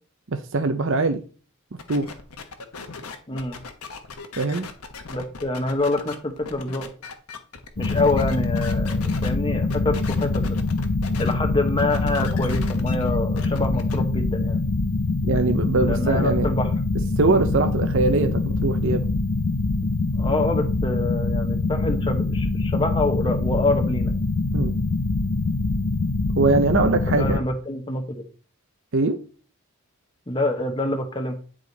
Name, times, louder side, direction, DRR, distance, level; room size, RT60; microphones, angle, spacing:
voice 1, 0.3-1.2 1.9-2.1 4.4-4.7 15.2-16.5 17.2-19.0 24.5-24.7 26.4-27.4 28.9-29.2, right 3 dB, 60° right, 0.7 m, -22 dB
sound 1, 1.8-9.3 9.7-11.3 11.6-14.0, left 4 dB, 90° left, 1.2 m, -39 dB
voice 2, 5.1-6.9 7.8-10.6 11.2-14.6 15.7-16.7 20.2-24.1 27.1-28.0 30.3-31.4, left 2 dB, 20° left, 1.1 m, -26 dB
sound 2, 7.8-27.4, left 3 dB, 70° left, 0.8 m, -24 dB
10.5 x 5.0 x 4.0 m
head